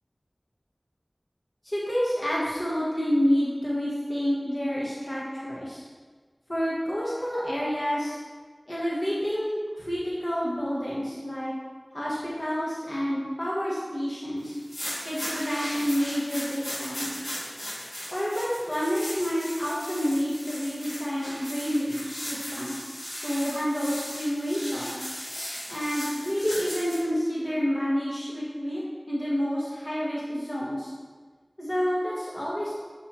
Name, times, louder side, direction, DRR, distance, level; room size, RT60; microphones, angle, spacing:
voice 1, 1.6-5.8 6.5-8.2 8.7-11.5 11.9-14.5 15.0-17.3 18.1-22.7 23.2-25.0 25.7-30.9 31.6-32.8, equal, 50° left, -7 dB, 1.5 m, -29 dB
sound 1, 14.5-27.0, equal, 65° left, 1.7 m, -37 dB
7.7 x 3.8 x 4.4 m, 1.5 s
wide cardioid pair, 40°, 0 cm